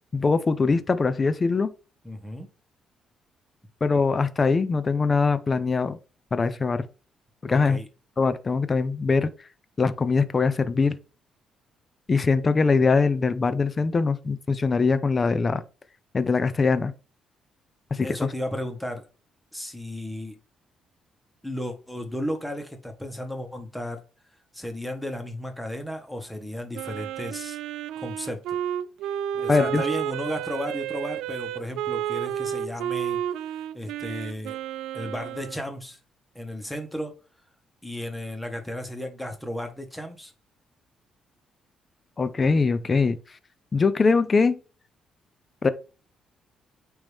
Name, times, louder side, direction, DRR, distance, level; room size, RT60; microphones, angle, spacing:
voice 1, 0.1-1.7 3.8-6.0 6.3-6.9 7.4-7.8 8.2-9.3 9.8-11.0 12.1-15.6 16.1-16.9 17.9-18.3 29.5-29.8 42.2-43.2 43.7-44.6 45.6-45.7, left 4 dB, 35° left, 0.6 m, -22 dB
voice 2, 2.0-2.5 7.5-7.9 18.0-19.1 19.5-20.4 21.4-24.0 24.5-27.6 28.0-28.6 29.3-33.2 33.5-34.6 34.9-36.0 36.3-37.1 37.8-40.3, equal, 5° left, 1.5 m, -34 dB
Wind instrument woodwind instrument, 26.7-35.6, right 10 dB, 90° right, 0.3 m, -31 dB
8.8 x 3.1 x 3.5 m
cardioid pair, 90°, 0 cm